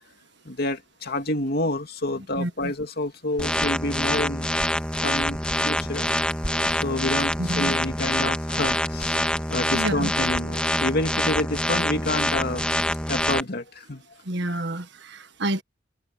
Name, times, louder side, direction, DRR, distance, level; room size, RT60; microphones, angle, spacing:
voice 1, 0.4-4.5 5.0-5.4 5.6-6.1 6.7-12.7 13.1-14.0, left 1 dB, 55° left, 2.4 m, -28 dB
voice 2, 2.4-2.7 6.6-6.7 7.4-7.7 9.7-10.1 14.2-15.6, right 1 dB, 65° right, 1.6 m, -29 dB
sound 1, 3.4-13.4, left 1 dB, 5° left, 1.8 m, -25 dB
head